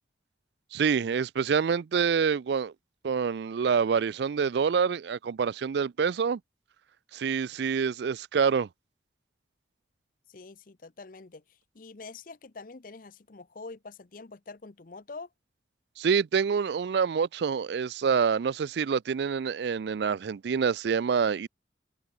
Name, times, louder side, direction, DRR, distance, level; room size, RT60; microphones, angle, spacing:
voice 1, 0.7-2.7 3.0-6.4 7.1-8.7 16.0-21.5, right 6 dB, 65° right, 0.4 m, -26 dB
voice 2, 10.3-11.4 11.7-15.3, left 3 dB, 45° left, 0.7 m, -45 dB
head